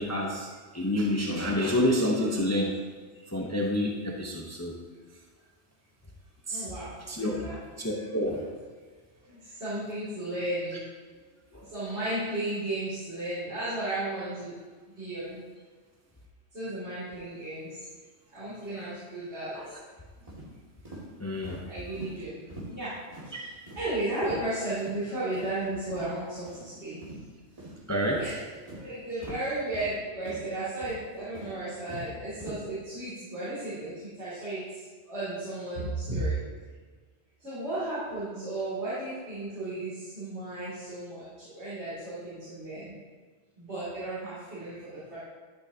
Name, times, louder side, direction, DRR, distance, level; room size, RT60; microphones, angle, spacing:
voice 1, 0.0-2.7 3.3-4.7 6.5-6.7 7.1-7.4 7.8-8.5 11.5-11.6 19.5-19.7 21.2-21.6 27.9-28.2, left 1 dB, 15° left, -1 dB, 0.7 m, -28 dB
voice 2, 6.5-8.0 9.3-10.8 11.1-11.2 11.6-14.6 14.9-15.4 16.5-17.8 18.3-19.8 21.6-23.0 23.2-27.0 28.2-28.4 28.7-36.4 37.4-43.0 43.6-45.2, right 2 dB, 70° right, -13 dB, 3.2 m, -34 dB
sound 1, 20.3-20.5 20.8-21.0 21.4-21.6 21.9-22.1 22.5-22.7 23.1-23.3 23.7-23.8 24.2-24.5 24.8-24.9 25.3-25.5 25.9-26.0 26.5-26.6 27.0-27.2 27.6-27.8 28.1-28.3 28.7-28.8 29.2-29.4 29.7-29.9 30.2-30.4 30.8-31.0 31.3-32.1 32.4-32.6, right 1 dB, 30° right, 2.2 m, -43 dB
12.0 x 6.2 x 2.8 m, 1.5 s
omnidirectional pair, 1.2 m